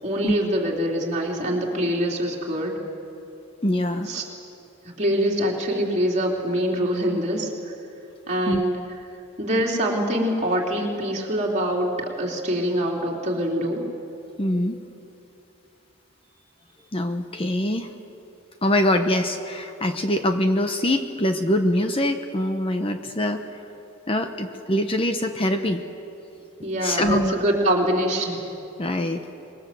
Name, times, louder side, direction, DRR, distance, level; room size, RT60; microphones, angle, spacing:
voice 1, 0.0-2.8 4.0-4.2 4.8-7.7 8.3-8.8 9.4-13.8 26.6-28.4, equal, 35° right, -2 dB, 3.5 m, -24 dB
voice 2, 3.6-4.1 8.5-8.6 14.4-14.8 16.9-17.9 18.6-23.6 24.1-25.8 26.8-27.4 28.8-29.2, left 1 dB, 25° left, 6 dB, 0.9 m, -23 dB
25.5 x 21.0 x 7.7 m, 2.8 s
head